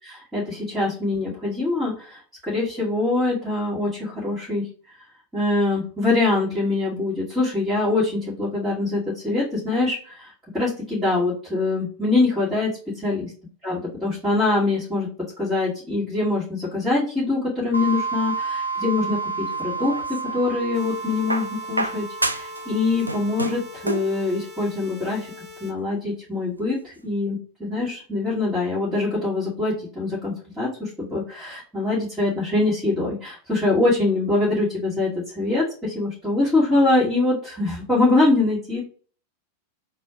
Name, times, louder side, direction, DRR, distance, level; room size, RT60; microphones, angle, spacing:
voice 1, 0.0-4.7 5.3-12.7 13.0-13.3 13.6-15.1 15.4-25.3 25.6-38.8, left 2 dB, 5° right, -11 dB, 2.2 m, -24 dB
sound 1, 17.7-24.2, right 4 dB, 80° left, 0.5 m, -31 dB
sound 2, 19.5-20.5 21.3-22.6 22.9-24.2 25.3-25.4, right 1 dB, 85° right, 0.4 m, -29 dB
sound 3, 20.7-25.7, left 4 dB, 25° right, 1.2 m, -43 dB
4.1 x 2.6 x 4.8 m, 0.40 s
figure-of-eight pair, 90°, 0 cm